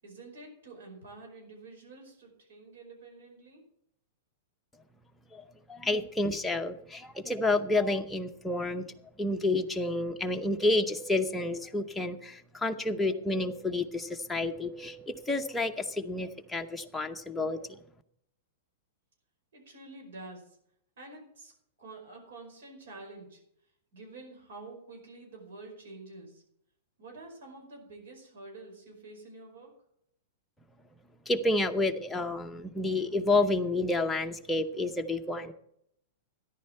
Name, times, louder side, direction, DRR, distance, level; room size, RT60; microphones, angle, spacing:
voice 1, 0.0-3.6 19.5-20.6 21.0-21.5 21.8-23.4 23.9-26.4 27.0-29.7, right 2 dB, 80° right, 2 dB, 5.1 m, -48 dB
voice 2, 5.3-8.8 9.2-17.7 31.3-35.5, left 2 dB, 5° left, 3 dB, 0.7 m, -30 dB
13.5 x 10.5 x 4.4 m, 0.72 s
supercardioid pair, 160°, 0 cm